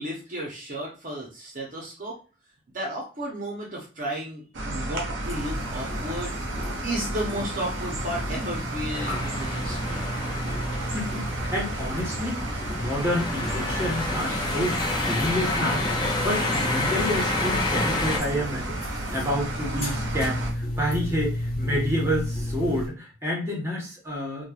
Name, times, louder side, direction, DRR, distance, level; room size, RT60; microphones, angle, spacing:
voice 1, 0.0-2.2 2.7-6.3 6.8-10.1, right 1 dB, 45° right, -2 dB, 0.7 m, -33 dB
sound 1, 4.5-20.5, right 2 dB, 80° right, 0.7 m, -33 dB
sound 2, 5.2-22.9, equal, 50° left, 1.4 m, -33 dB
sound 3, 8.9-18.2, left 2 dB, 20° left, 0.5 m, -29 dB
voice 2, 10.9-12.5 12.8-14.8 15.1-18.8 19.1-24.4, equal, 15° right, -3 dB, 0.9 m, -29 dB
3.0 x 2.2 x 2.3 m, 0.34 s
head